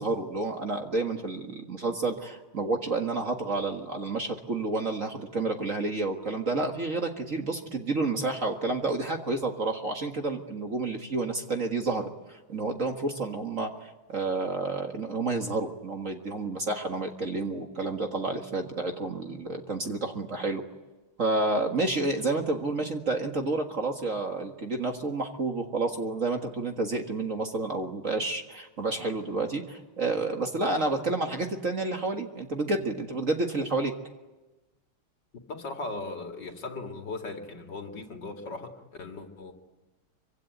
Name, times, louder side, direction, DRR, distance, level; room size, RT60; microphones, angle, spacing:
voice 1, 0.0-20.6 21.2-33.9, right 3 dB, 40° right, 3 dB, 1.9 m, -30 dB
voice 2, 35.5-39.5, left 3 dB, 55° left, 3 dB, 3.0 m, -38 dB
25.5 x 24.5 x 9.3 m, 1.1 s
omnidirectional pair, 2.4 m